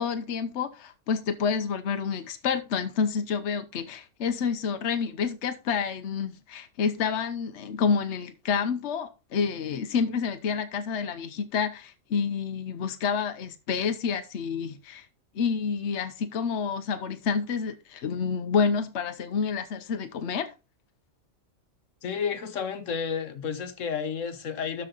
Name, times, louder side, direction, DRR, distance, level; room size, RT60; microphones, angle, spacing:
voice 1, 0.0-15.1 15.3-20.5, left 6 dB, 65° left, 1.1 m, -29 dB
voice 2, 22.0-24.9, left 6 dB, 85° left, 1.4 m, -31 dB
12.5 x 4.8 x 3.9 m
omnidirectional pair, 1.3 m